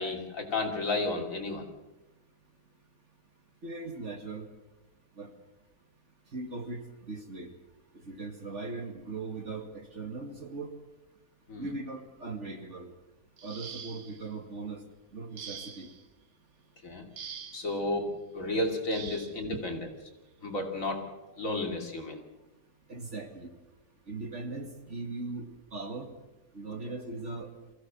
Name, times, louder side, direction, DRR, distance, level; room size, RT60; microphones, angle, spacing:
voice 1, 0.0-1.7 11.5-11.7 16.8-17.0 17.5-19.9 20.4-21.0 21.4-22.2, left 2 dB, 50° left, 3 dB, 3.2 m, -32 dB
voice 2, 3.6-4.5 5.2-5.3 6.3-7.5 7.9-10.7 11.6-12.9 13.4-14.8 15.1-15.9 19.1-19.2 19.5-19.6 22.9-23.5 24.1-26.1 26.5-27.5, right 3 dB, 45° right, 5 dB, 2.3 m, -39 dB
sound 1, 13.4-14.3 15.4-16.0 17.2-17.7 18.9-19.4 20.6-20.7 21.2-21.5, right 7 dB, 70° right, 1.9 m, -44 dB
23.0 x 16.0 x 7.4 m, 1.1 s
omnidirectional pair, 1.8 m